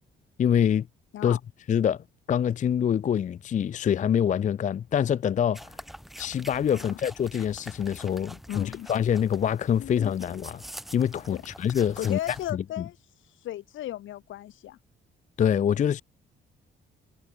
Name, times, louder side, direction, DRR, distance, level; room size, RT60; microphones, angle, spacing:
voice 1, 0.4-0.9 1.2-1.4 1.7-5.7 6.2-10.6 10.9-12.2 12.5-12.8 15.4-16.0, left 9 dB, 40° left, 0.4 m, -25 dB
sound 1, 5.5-12.5, equal, ahead, 2.0 m, -45 dB
voice 2, 8.5-8.9 9.8-9.9 11.3-11.4 12.0-13.0 13.4-14.8, left 13 dB, 80° left, 1.9 m, -35 dB
cardioid pair, 90°, 20 cm